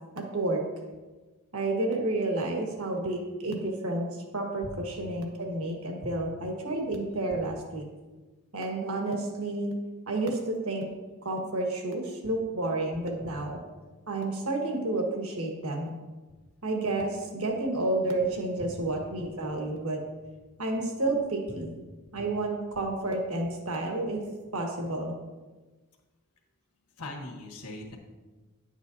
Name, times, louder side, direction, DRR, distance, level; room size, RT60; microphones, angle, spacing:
voice 1, 0.1-0.6 1.5-7.8 8.5-9.7 10.1-10.9 11.2-13.6 14.1-15.9 16.6-20.0 20.6-21.7 22.1-24.2 24.5-25.1, right 2 dB, 65° right, 1 dB, 1.4 m, -30 dB
voice 2, 27.0-28.0, left 1 dB, 85° left, 1 dB, 1.4 m, -41 dB
10.5 x 8.2 x 2.7 m, 1.2 s
head